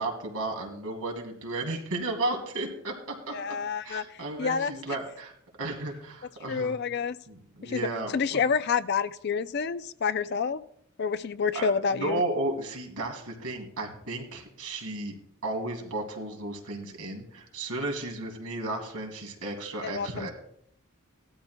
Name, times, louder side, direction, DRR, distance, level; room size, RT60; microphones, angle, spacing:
voice 1, 0.0-3.6 3.8-5.3 5.6-6.7 7.3-8.4 11.5-15.1 15.4-20.3, right 2 dB, 90° right, 2 dB, 2.5 m, -34 dB
voice 2, 3.3-4.7 6.5-7.2 7.6-7.9 8.1-10.6 11.0-12.2 19.8-20.3, left 5 dB, 45° left, 14 dB, 0.4 m, -28 dB
18.0 x 12.5 x 2.2 m, 0.71 s
head